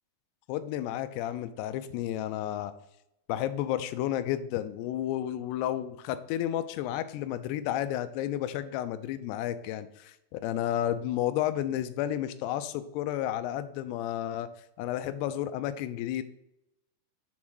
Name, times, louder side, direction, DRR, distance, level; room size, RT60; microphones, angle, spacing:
voice 1, 0.5-2.7 3.3-14.5 14.8-16.2, left 12 dB, 85° left, 11 dB, 2.6 m, -32 dB
7.3 x 3.6 x 6.2 m, 0.82 s
omnidirectional pair, 4.7 m